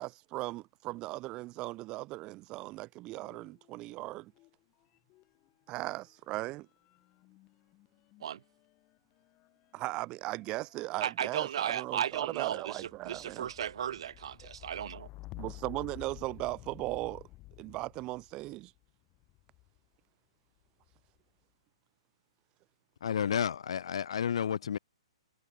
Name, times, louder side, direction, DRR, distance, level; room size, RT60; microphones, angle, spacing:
voice 1, 0.0-4.3 5.7-6.7 9.7-13.5 15.4-17.2 17.6-18.7, right 19 dB, 25° right, 0.5 m, -38 dB
sound 1, 3.2-4.6 4.8-19.9 20.6-21.2, left 20 dB, 30° left, 7.0 m, -53 dB
voice 2, 11.0-15.1, right 9 dB, 60° right, 0.9 m, -35 dB
voice 3, 23.0-24.8, left 8 dB, 70° left, 0.5 m, -31 dB
hypercardioid pair, 135°, 3 cm